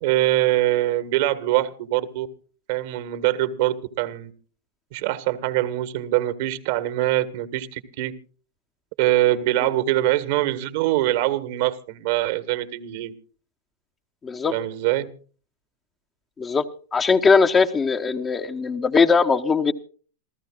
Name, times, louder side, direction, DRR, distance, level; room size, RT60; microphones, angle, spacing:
voice 1, 0.0-2.3 2.7-4.3 4.9-8.1 9.0-13.1 14.5-15.1, right 15 dB, 60° right, 1.7 m, -23 dB
voice 2, 14.2-14.5 16.4-16.6 16.9-19.7, left 5 dB, 20° left, 1.1 m, -20 dB
27.0 x 14.5 x 2.4 m
hypercardioid pair, 100°, 0 cm